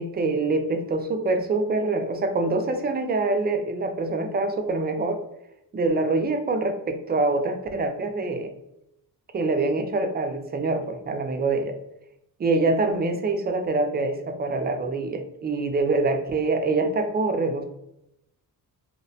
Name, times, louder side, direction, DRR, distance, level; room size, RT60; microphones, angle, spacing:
voice 1, 0.0-5.2 5.7-8.5 9.3-11.7 12.4-17.6, right 3 dB, 25° right, 6 dB, 0.4 m, -25 dB
2.8 x 2.1 x 2.7 m, 0.83 s
cardioid pair, 90°, 37 cm